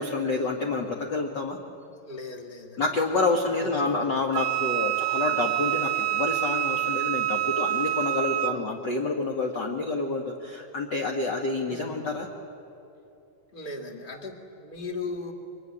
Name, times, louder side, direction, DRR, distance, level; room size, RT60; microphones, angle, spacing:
voice 1, 0.0-1.6 2.8-12.3, left 3 dB, 50° left, 1 dB, 1.3 m, -28 dB
voice 2, 2.0-2.8 3.6-4.1 8.5-8.9 11.7-12.1 13.5-15.3, left 3 dB, 20° left, 2 dB, 1.7 m, -38 dB
Wind instrument woodwind instrument, 4.3-8.6, right 14 dB, 80° right, 2.4 m, -27 dB
25.0 x 24.0 x 9.9 m, 2.8 s
omnidirectional pair, 4.2 m